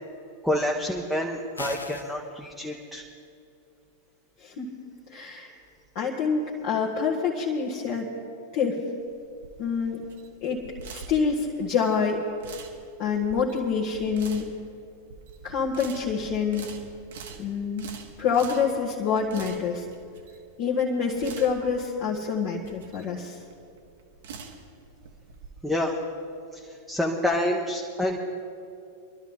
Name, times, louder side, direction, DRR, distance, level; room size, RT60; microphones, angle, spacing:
voice 1, 0.4-3.0 25.6-25.9 26.9-28.2, left 1 dB, ahead, -2 dB, 1.1 m, -27 dB
sound 1, 1.6-2.2, left 3 dB, 80° left, 0.7 m, -37 dB
voice 2, 5.1-5.5 6.0-8.1 8.5-8.8 9.6-10.0 10.4-10.6 10.9-12.2 13.0-14.5 15.4-16.7 17.4-17.8 18.2-19.8 20.6-23.4, left 6 dB, 45° left, -4 dB, 1.6 m, -26 dB
sound 2, 9.0-25.5, right 5 dB, 60° right, 1.4 m, -45 dB
24.0 x 12.5 x 3.7 m, 2.5 s
figure-of-eight pair, 90°, 0 cm